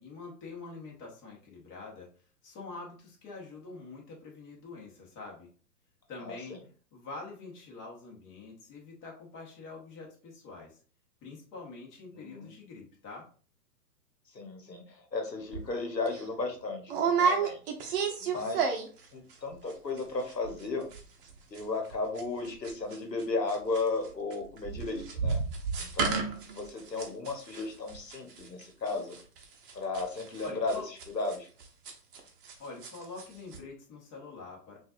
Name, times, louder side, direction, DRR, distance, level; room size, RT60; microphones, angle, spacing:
voice 1, 0.0-2.1 2.4-5.5 6.1-6.6 6.9-10.8 11.2-13.3 30.4-30.9 32.6-34.8, left 3 dB, 25° left, -2 dB, 1.3 m, -45 dB
voice 2, 12.1-12.5 14.3-17.6 18.2-18.8 19.1-20.9 21.5-25.4 25.8-29.2 29.7-30.7 31.1-31.5, left 3 dB, 85° left, 3 dB, 1.2 m, -35 dB
sound 1, 15.5-15.7 16.1-16.2 16.9-19.1 19.3-19.7 20.0-20.1 20.3-20.7 20.9-23.2 23.5-32.5 32.8-33.3 33.5-33.6, right 5 dB, 35° right, 0.9 m, -32 dB
5.8 x 2.6 x 2.5 m, 0.39 s
figure-of-eight pair, 115°, 49 cm